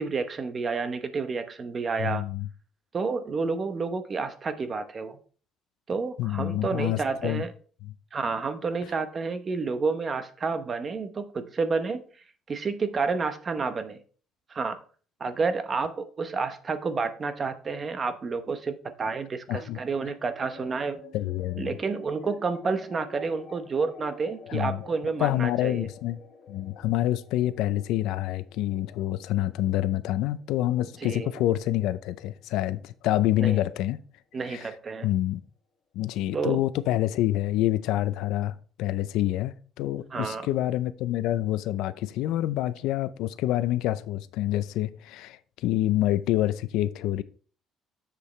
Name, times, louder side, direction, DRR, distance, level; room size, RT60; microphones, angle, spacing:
voice 1, 0.0-2.2 2.9-5.2 5.9-7.5 8.1-12.0 12.5-14.0 14.5-14.8 15.2-21.0 21.6-25.9 31.0-31.3 33.4-33.6 34.3-35.1 36.3-36.6 40.1-40.5, right 4 dB, 30° right, 0.8 m, -30 dB
voice 2, 2.0-2.5 6.2-7.4 7.8-7.9 19.5-19.8 21.1-21.8 24.5-24.8 25.2-26.2 26.5-34.0 34.4-34.7 35.0-35.4 35.9-47.2, left 14 dB, 80° left, 0.5 m, -27 dB
sound 1, 19.6-32.2, left 4 dB, 50° left, 2.9 m, -50 dB
7.5 x 6.8 x 3.2 m
cardioid pair, 150°, 0 cm